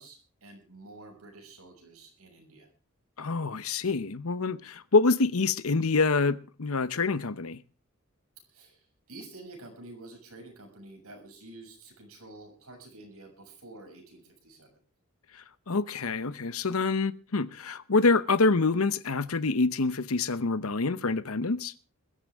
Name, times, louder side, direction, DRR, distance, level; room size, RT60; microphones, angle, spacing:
voice 1, 0.0-2.7 8.5-14.7, right 2 dB, 80° right, 7.0 m, -49 dB
voice 2, 3.2-7.6 15.7-21.7, left 3 dB, 75° left, 0.9 m, -26 dB
21.5 x 14.0 x 3.6 m
head